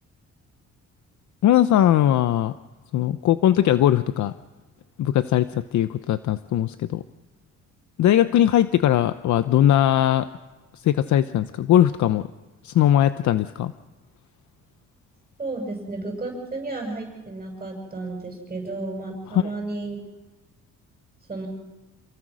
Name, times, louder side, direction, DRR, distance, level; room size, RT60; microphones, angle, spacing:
voice 1, 1.4-2.6 2.9-4.3 5.0-7.0 8.0-10.3 10.7-12.3 12.6-13.7 19.3-19.5, left 11 dB, 70° left, 12 dB, 0.8 m, -20 dB
voice 2, 15.4-20.0 21.3-21.5, right 2 dB, 20° right, 0 dB, 7.1 m, -32 dB
28.0 x 19.0 x 6.3 m, 1.2 s
cardioid pair, 90°, 30 cm